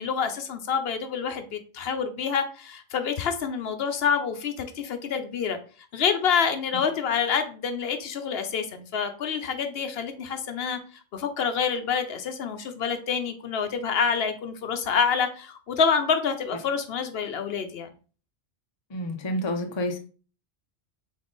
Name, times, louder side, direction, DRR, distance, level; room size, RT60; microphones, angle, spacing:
voice 1, 0.0-5.6 5.9-10.8 11.1-17.9, left 6 dB, 70° left, 0.8 m, -27 dB
voice 2, 18.9-20.0, left 1 dB, 30° left, 0.6 m, -29 dB
3.6 x 3.5 x 3.8 m
omnidirectional pair, 1.1 m